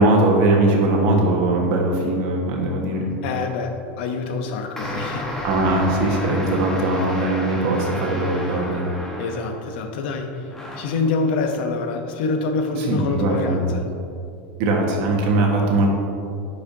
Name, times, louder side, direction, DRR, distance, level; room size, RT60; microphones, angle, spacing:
voice 1, 0.0-3.1 5.4-8.8 12.9-13.6 14.6-15.9, right 2 dB, 60° right, -1 dB, 1.4 m, -20 dB
voice 2, 3.2-5.3 9.2-10.4 10.8-13.8, left 3 dB, 70° left, 5 dB, 0.7 m, -26 dB
sound 1, 4.8-9.8 10.5-11.1, left 1 dB, 10° left, 1.1 m, -32 dB
10.0 x 4.9 x 2.7 m, 2.6 s
supercardioid pair, 120°, 6 cm